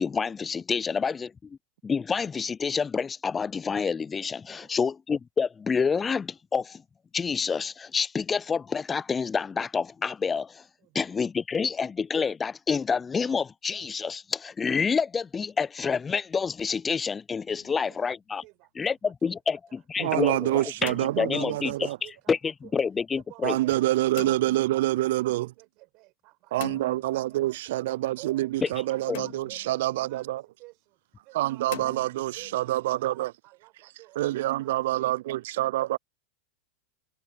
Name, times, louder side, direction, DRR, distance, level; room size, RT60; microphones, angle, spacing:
voice 1, 0.0-1.6 1.8-6.8 7.1-10.7 10.9-18.4 18.8-21.9 22.3-23.6 28.6-28.7 29.1-29.2, left 5 dB, 20° left, 0.4 m, -28 dB
sound 1, 17.5-18.0 20.6-21.8 24.2-24.7 26.6-27.5 29.1-29.8 31.7-32.6, left 17 dB, 65° left, 3.9 m, -43 dB
voice 2, 17.6-18.0 18.4-19.4 20.0-20.4 21.1-21.5 21.7-22.8 23.1-28.9 29.2-32.1 32.3-34.2 34.5-35.1, right 24 dB, 50° right, 5.9 m, -53 dB
voice 3, 20.0-22.0 23.4-25.5 26.5-30.4 31.3-33.3 34.2-36.0, right 16 dB, 65° right, 0.4 m, -26 dB
hypercardioid pair, 95°, 0 cm